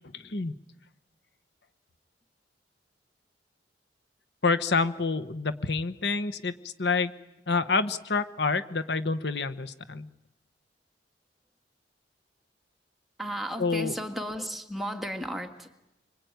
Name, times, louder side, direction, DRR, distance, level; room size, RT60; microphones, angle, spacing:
voice 1, 0.1-0.5 4.4-7.1 7.5-10.1 13.6-13.9, left 4 dB, 65° left, 11 dB, 1.1 m, -28 dB
voice 2, 13.2-15.7, equal, ahead, 3 dB, 2.3 m, -34 dB
25.5 x 24.5 x 9.3 m, 0.94 s
head